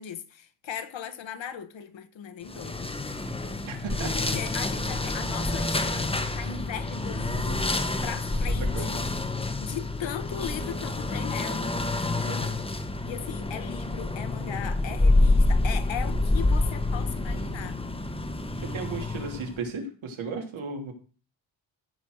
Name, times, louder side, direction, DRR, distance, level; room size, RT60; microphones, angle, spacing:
voice 1, 0.0-2.9 3.7-3.8 4.1-7.7 8.0-9.1 9.4-11.7 13.1-17.8, left 8 dB, 70° left, 1.5 m, -38 dB
sound 1, 2.5-19.6, left 2 dB, 10° left, 1.1 m, -27 dB
voice 2, 3.6-4.3 8.7-8.9 12.2-12.6 18.7-20.9, right 4 dB, 80° right, 3.2 m, -35 dB
15.0 x 5.2 x 6.4 m
wide cardioid pair, 135°, 47 cm